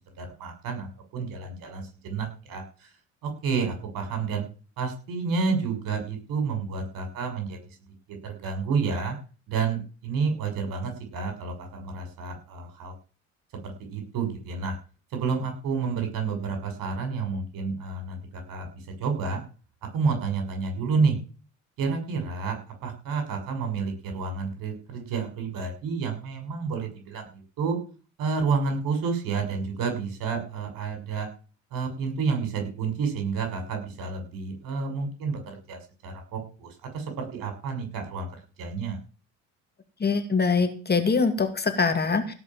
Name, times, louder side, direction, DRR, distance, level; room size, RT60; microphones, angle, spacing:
voice 1, 0.2-2.6 3.2-4.4 4.8-7.6 8.2-9.2 9.5-12.9 13.6-14.7 15.1-18.7 19.0-19.4 19.9-21.2 21.8-22.6 22.8-27.8 28.2-31.3 31.7-38.3 38.6-39.0, right 5 dB, 55° right, 4 dB, 6.6 m, -30 dB
voice 2, 40.0-42.3, left 4 dB, 25° left, 7 dB, 2.4 m, -23 dB
17.5 x 6.5 x 7.6 m, 0.38 s
hypercardioid pair, 65°, 40 cm